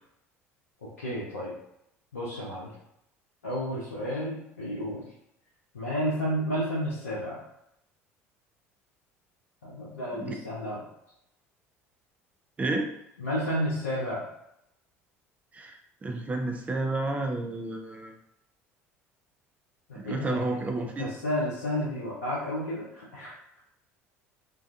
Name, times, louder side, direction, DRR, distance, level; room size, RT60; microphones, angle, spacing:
voice 1, 1.0-1.5 2.1-2.7 3.4-5.0 5.7-7.4 9.6-10.8 13.2-14.2 19.9-20.6 21.0-23.3, equal, 85° left, -7 dB, 0.5 m, -31 dB
voice 2, 12.6-12.9 15.5-18.1 20.0-21.1, right 2 dB, 20° right, 3 dB, 0.4 m, -31 dB
2.3 x 2.2 x 2.6 m, 0.80 s
figure-of-eight pair, 65°, 8 cm